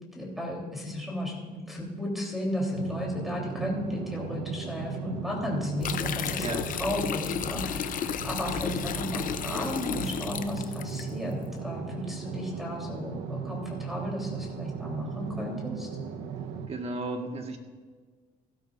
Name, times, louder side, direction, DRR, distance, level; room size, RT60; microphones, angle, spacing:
voice 1, 0.1-15.9, left 1 dB, ahead, -2 dB, 3.5 m, -34 dB
sound 1, 2.7-16.7, right 6 dB, 90° right, 1.0 m, -37 dB
sound 2, 5.8-11.0, left 9 dB, 55° left, 0.7 m, -33 dB
voice 2, 16.7-17.6, right 2 dB, 35° right, 4 dB, 1.6 m, -33 dB
16.5 x 12.5 x 2.6 m, 1.5 s
cardioid pair, 110°, 17 cm